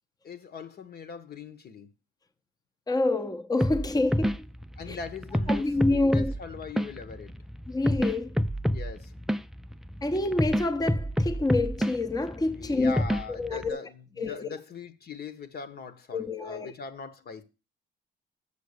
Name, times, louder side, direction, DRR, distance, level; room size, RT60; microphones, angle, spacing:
voice 1, 0.2-1.9 4.8-7.3 8.7-9.1 12.5-17.4, left 6 dB, 55° left, 1.2 m, -41 dB
voice 2, 2.9-4.5 4.9-5.0 5.5-6.3 7.7-8.4 10.0-13.0 13.3-13.8 14.2-14.5 16.1-16.7, left 2 dB, 20° left, 0.8 m, -27 dB
sound 1, 3.6-13.7, equal, ahead, 0.4 m, -30 dB
6.9 x 6.4 x 6.7 m
cardioid pair, 90°, 20 cm